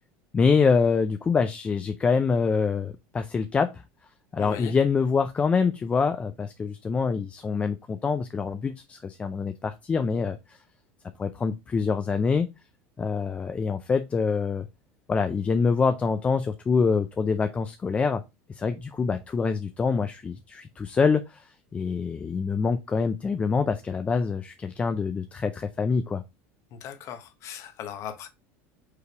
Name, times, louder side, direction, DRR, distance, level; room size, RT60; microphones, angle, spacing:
voice 1, 0.3-3.8 4.3-10.6 11.2-12.5 13.0-14.7 15.1-18.2 18.5-21.4 21.7-26.2, left 5 dB, 20° left, 0.4 m, -25 dB
voice 2, 4.4-4.7 26.7-28.3, left 9 dB, 45° left, 0.9 m, -38 dB
4.7 x 3.3 x 3.3 m
supercardioid pair, 130°, 7 cm